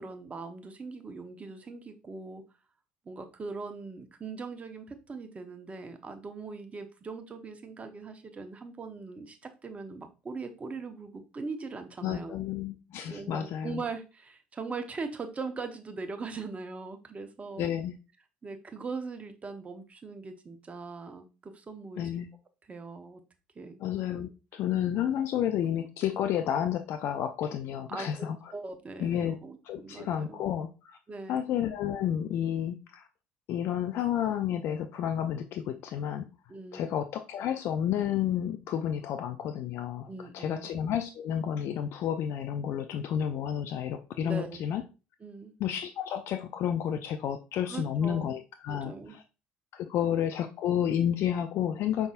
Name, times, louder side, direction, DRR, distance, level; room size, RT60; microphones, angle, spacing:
voice 1, 0.0-2.4 3.1-12.3 13.1-17.7 18.4-22.1 22.7-23.2 23.6-23.8 27.9-30.5 31.1-31.4 36.5-36.9 40.1-40.7 44.2-44.6 45.2-45.5 47.7-48.3 48.7-49.2 50.0-50.2, right 4 dB, 25° right, 7 dB, 0.8 m, -40 dB
voice 2, 12.0-13.8 17.6-18.0 22.0-22.3 23.8-28.5 29.0-29.4 29.6-31.0 31.3-33.1 33.5-36.2 36.7-44.8 45.6-49.2 49.7-52.1, left 9 dB, 55° left, 8 dB, 0.4 m, -31 dB
5.2 x 3.5 x 2.4 m, 0.31 s
hypercardioid pair, 65°, 5 cm